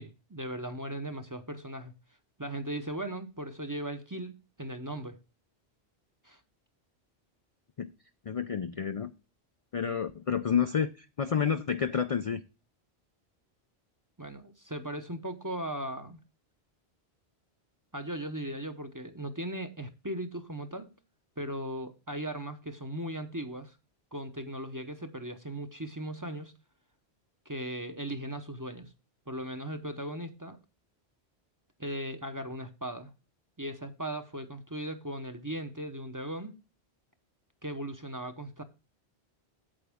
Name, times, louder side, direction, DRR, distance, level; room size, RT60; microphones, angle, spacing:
voice 1, 0.0-1.9 2.4-5.2 6.2-6.4 14.2-16.2 17.9-20.9 21.4-23.8 24.1-26.5 27.5-28.9 29.3-30.6 31.8-33.1 33.6-36.6 37.6-38.6, right 1 dB, 20° right, 0.7 m, -38 dB
voice 2, 8.3-9.1 9.7-12.4, left 7 dB, 50° left, 0.4 m, -29 dB
8.8 x 7.9 x 3.5 m
omnidirectional pair, 1.1 m